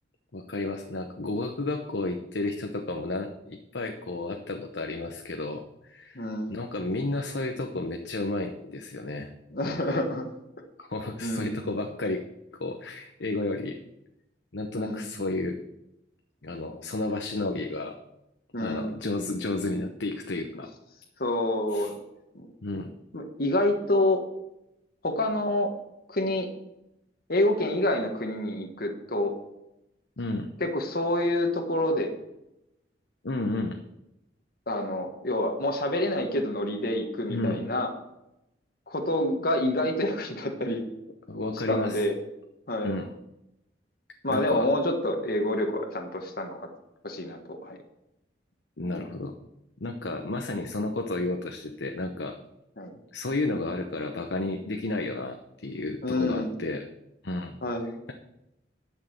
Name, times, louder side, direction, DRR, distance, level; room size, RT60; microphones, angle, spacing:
voice 1, 0.3-9.3 9.6-10.0 10.8-12.2 12.6-13.8 14.5-15.6 16.4-17.9 18.6-20.7 21.7-21.9 22.6-22.9 30.2-30.5 33.2-33.8 37.3-37.6 41.3-42.0 42.8-43.1 44.3-44.7 48.8-49.3 49.8-52.4 53.1-56.9 57.2-57.6, left 2 dB, 75° left, 4 dB, 0.9 m, -32 dB
voice 2, 6.1-6.6 9.5-10.2 11.2-11.6 14.7-15.1 18.5-18.9 21.2-21.9 22.3-22.5 23.1-24.2 25.0-25.7 26.1-26.5 27.3-29.3 30.6-32.1 34.7-37.9 38.9-40.8 41.7-42.2 42.7-43.0 44.2-46.7 47.0-47.8 52.8-52.9 56.0-56.5 57.6-58.0, left 1 dB, 55° left, 4 dB, 1.5 m, -27 dB
11.0 x 6.6 x 6.5 m, 0.86 s
head